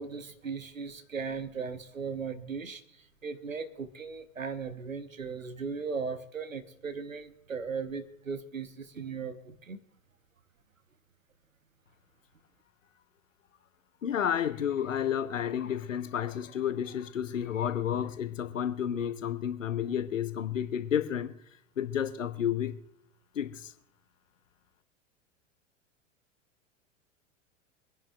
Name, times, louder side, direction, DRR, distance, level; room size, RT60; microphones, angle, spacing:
voice 1, 0.0-2.8 3.2-9.8, right 5 dB, 85° right, 1.0 m, -37 dB
voice 2, 14.0-21.4 21.8-22.8 23.3-23.7, left 9 dB, 75° left, 1.0 m, -31 dB
24.5 x 10.5 x 2.3 m
figure-of-eight pair, 90°, 39 cm